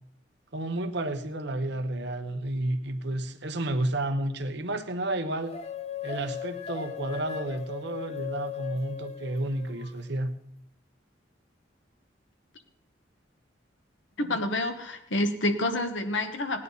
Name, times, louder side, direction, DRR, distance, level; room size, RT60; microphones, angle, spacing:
voice 1, 0.5-5.5 6.0-10.3, right 1 dB, 65° right, 8 dB, 1.1 m, -31 dB
sound 1, 5.5-10.0, left 8 dB, 35° left, 0.7 m, -38 dB
voice 2, 14.2-16.6, left 1 dB, 80° left, 7 dB, 1.4 m, -28 dB
17.5 x 9.8 x 4.1 m, 0.74 s
head